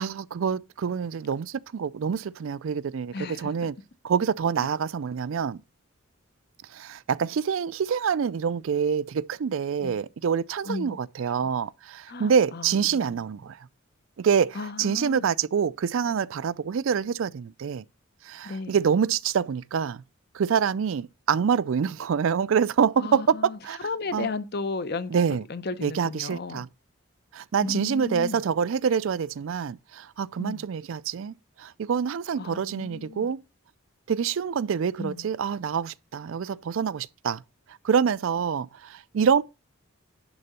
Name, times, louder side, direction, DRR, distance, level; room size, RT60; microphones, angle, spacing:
voice 1, 0.0-3.7 4.0-5.6 6.7-13.7 14.2-17.8 18.2-20.0 20.3-23.8 24.1-24.3 25.1-25.4 25.8-26.7 27.3-33.4 34.1-37.4 37.8-39.4, right 7 dB, 65° right, 0.4 m, -26 dB
voice 2, 3.1-3.5 9.8-10.0 10.7-11.0 12.1-13.2 14.5-15.3 18.4-18.8 23.0-23.6 23.8-25.1 25.5-26.6 27.6-28.4 30.4-30.7 32.4-33.3 35.0-35.3, left 3 dB, 50° left, 0.7 m, -34 dB
11.0 x 3.8 x 6.6 m
head